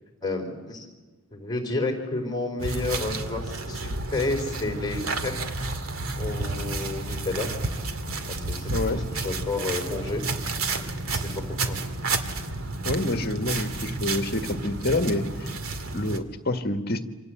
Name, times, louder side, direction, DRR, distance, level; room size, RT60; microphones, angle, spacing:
voice 1, 0.2-0.9 1.3-5.3 6.2-7.5 8.3-10.2 10.8-11.8, left 2 dB, 20° left, 3 dB, 4.4 m, -31 dB
walking on leaves and then sidewalk, 2.6-16.2, right 3 dB, 80° right, 2.2 m, -31 dB
voice 2, 8.7-9.0 12.8-15.5 15.9-17.0, left 2 dB, 45° left, 6 dB, 1.8 m, -27 dB
28.0 x 26.5 x 7.9 m, 1.2 s
head